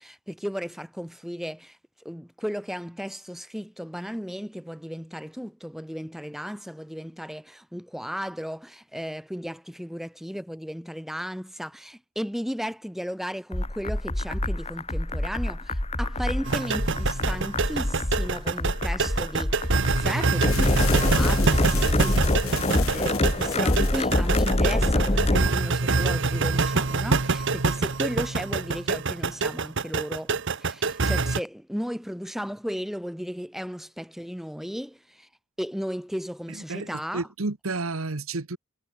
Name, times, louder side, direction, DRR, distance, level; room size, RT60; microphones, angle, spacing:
voice 1, 0.0-1.8 2.0-30.3 30.6-35.3 35.6-37.3, equal, ahead, 4.8 m, -35 dB
sound 1, 13.5-25.5, left 1 dB, 30° left, 2.0 m, -25 dB
sound 2, 16.5-31.4, right 4 dB, 60° right, 1.2 m, -26 dB
sound 3, 20.5-26.1, left 11 dB, 90° left, 4.5 m, -38 dB
voice 2, 36.7-38.6, right 3 dB, 80° right, 1.3 m, -31 dB
head